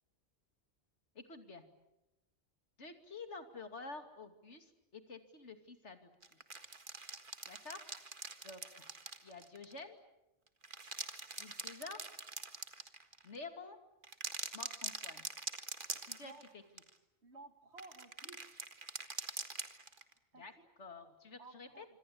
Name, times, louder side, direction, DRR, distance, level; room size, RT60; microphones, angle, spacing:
voice 1, 1.1-1.6 2.8-6.4 7.5-7.8 8.4-8.9 9.2-10.0 11.3-12.0 13.2-13.8 14.5-15.2 16.0-16.6 20.3-20.5 20.8-21.8, left 3 dB, 85° left, 7 dB, 2.9 m, -50 dB
sound 1, 6.2-9.8 10.5-13.4 14.0-16.5 16.8-16.9 17.8-20.1, right 3 dB, 50° right, 1.9 m, -44 dB
voice 2, 17.2-18.4 20.3-20.7 21.4-21.9, right 3 dB, 75° right, 8 dB, 2.4 m, -55 dB
26.5 x 25.5 x 8.6 m, 0.94 s
omnidirectional pair, 1.2 m